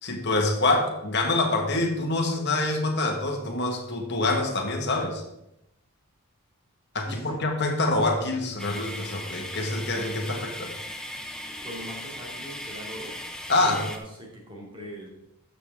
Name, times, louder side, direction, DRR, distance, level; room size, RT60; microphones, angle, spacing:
voice 1, 0.0-5.2 6.9-10.7 13.5-13.8, left 2 dB, 50° left, 2 dB, 1.6 m, -26 dB
voice 2, 7.0-7.4 11.5-13.2 13.6-15.1, equal, 20° right, -2 dB, 2.4 m, -41 dB
sound 1, 8.6-14.0, left 1 dB, 5° left, 0.7 m, -38 dB
12.5 x 6.9 x 3.7 m, 0.87 s
head